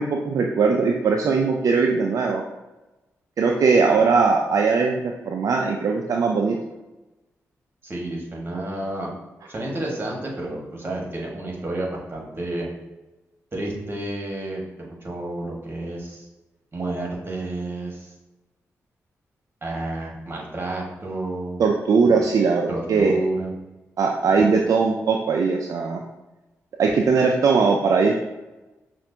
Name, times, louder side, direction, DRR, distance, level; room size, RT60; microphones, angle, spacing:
voice 1, 0.0-2.4 3.4-6.6 21.6-23.2 24.0-26.0 26.8-28.1, right 4 dB, 65° right, 1 dB, 0.4 m, -20 dB
voice 2, 7.8-9.1 9.5-12.7 13.5-16.3 16.7-18.1 19.6-21.6 22.0-22.2 22.7-23.5, right 2 dB, 35° right, -1 dB, 1.5 m, -30 dB
5.8 x 2.5 x 2.7 m, 1.0 s
supercardioid pair, 45°, 6 cm